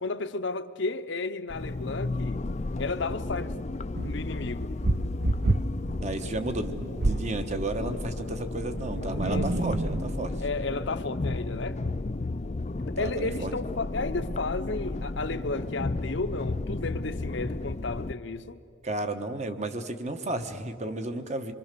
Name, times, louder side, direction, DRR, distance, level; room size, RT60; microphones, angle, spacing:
voice 1, 0.0-2.4 2.8-3.5 4.0-4.7 9.1-9.5 10.4-11.8 12.9-18.6, left 3 dB, 60° left, 0.8 m, -33 dB
sound 1, 1.5-18.1, left 2 dB, 35° left, 0.5 m, -33 dB
sound 2, 3.9-7.4 8.5-10.3, right 2 dB, 50° right, 0.6 m, -29 dB
voice 2, 6.0-10.3 13.0-13.5 18.8-21.5, right 2 dB, 35° right, 1.2 m, -33 dB
26.0 x 23.0 x 6.8 m
head